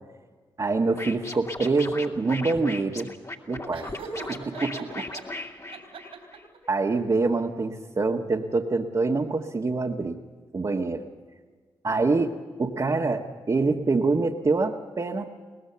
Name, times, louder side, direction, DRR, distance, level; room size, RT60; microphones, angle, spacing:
voice 1, 0.6-3.1 3.5-3.9 4.2-5.1 6.7-10.2 10.5-11.0 11.8-15.3, right 3 dB, 40° right, 0 dB, 1.4 m, -25 dB
Scratching (performance technique), 0.9-6.4, left 2 dB, 35° left, 2.4 m, -38 dB
Laughter, 3.7-5.2 5.7-6.6, right 4 dB, 85° right, 3.9 m, -39 dB
23.0 x 19.0 x 6.9 m, 1.5 s
supercardioid pair, 40°, 10 cm